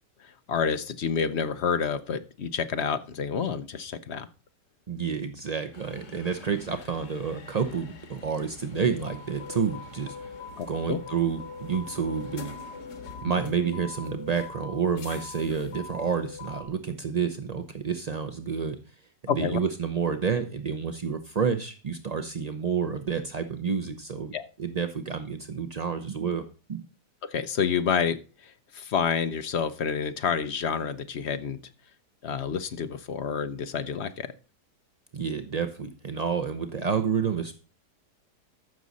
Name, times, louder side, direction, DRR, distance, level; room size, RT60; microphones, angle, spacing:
voice 1, 0.2-4.3 10.6-11.0 19.3-19.6 24.3-24.5 27.2-31.6 32.2-34.3, left 6 dB, 60° left, 10 dB, 0.7 m, -29 dB
voice 2, 4.9-10.2 10.7-12.5 13.2-18.8 19.2-24.3 24.6-26.9 35.1-37.5, right 6 dB, 80° right, 7 dB, 0.3 m, -29 dB
sound 1, 5.7-16.7, left 4 dB, 90° left, 2.1 m, -42 dB
14.0 x 6.3 x 4.1 m, 0.35 s
omnidirectional pair, 1.9 m